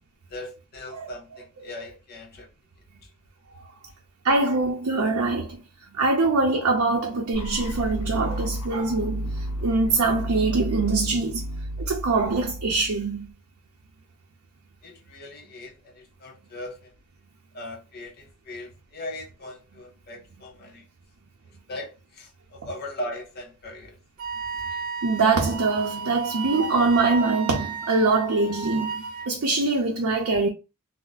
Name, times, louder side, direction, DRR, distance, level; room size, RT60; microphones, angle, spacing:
voice 1, 0.3-2.5 14.8-16.9 17.5-20.8 21.7-24.0 24.5-24.6, left 1 dB, 45° left, 0.7 m, -39 dB
voice 2, 4.2-5.6 5.9-9.3 9.6-11.4 11.8-13.3 25.0-30.5, right 3 dB, 75° right, 0.6 m, -23 dB
sound 1, 7.3-13.3, right 1 dB, 85° left, 0.6 m, -32 dB
Wind instrument woodwind instrument, 24.2-29.3, right 5 dB, 40° right, 0.8 m, -33 dB
2.4 x 2.0 x 3.8 m
head